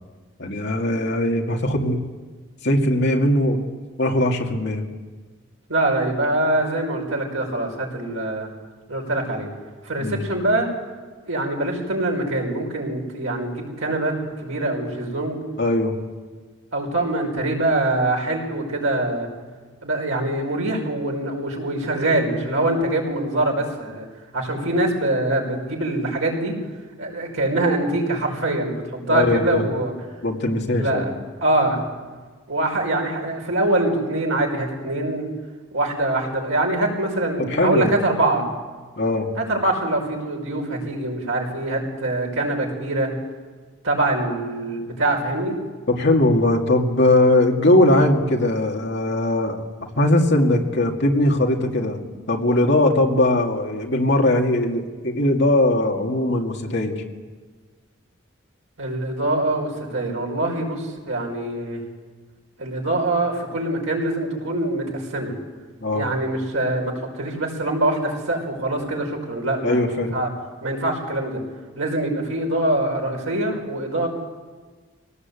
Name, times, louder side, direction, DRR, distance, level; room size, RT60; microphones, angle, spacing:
voice 1, 0.4-2.0 2.6-3.7 4.0-4.8 10.0-10.2 15.6-15.9 29.1-29.7 30.2-31.1 37.4-37.9 39.0-39.3 45.9-49.6 50.0-57.0 65.8-66.1 69.6-70.1, left 1 dB, 55° left, 1 dB, 2.3 m, -20 dB
voice 2, 5.7-8.5 8.9-9.5 9.8-10.7 11.3-15.4 16.7-19.3 19.8-24.1 24.3-26.6 27.0-29.9 30.8-31.1 31.4-31.8 32.5-35.3 35.7-38.4 39.5-43.1 43.8-45.6 58.8-61.8 62.6-65.3 65.9-70.3 70.6-71.4 71.8-74.1, right 2 dB, 90° right, 0 dB, 5.3 m, -24 dB
23.0 x 18.0 x 8.4 m, 1.4 s
head